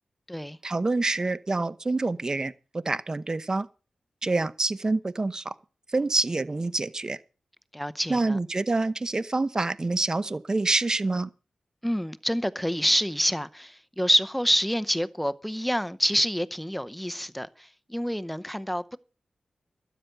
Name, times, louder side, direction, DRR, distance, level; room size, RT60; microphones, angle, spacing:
voice 1, 0.6-3.7 4.2-5.5 5.9-7.2 8.1-11.3, right 3 dB, 30° right, 0.8 m, -27 dB
voice 2, 7.7-8.4 11.8-17.5 17.9-19.0, equal, 5° left, 0.7 m, -27 dB
12.5 x 9.1 x 6.6 m
cardioid pair, 75°, 2 cm